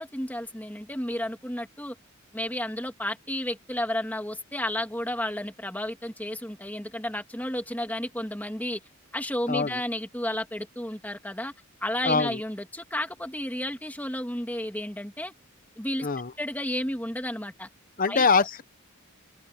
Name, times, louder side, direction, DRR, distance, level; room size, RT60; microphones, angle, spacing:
voice 1, 0.0-2.0 2.3-8.8 9.1-11.5 11.8-15.3 15.8-16.1 16.4-17.7 18.1-18.3, left 1 dB, 10° left, 2.2 m, -32 dB
voice 2, 9.5-9.8 12.1-12.4 16.0-16.3 18.0-18.6, left 4 dB, 40° left, 0.9 m, -23 dB
head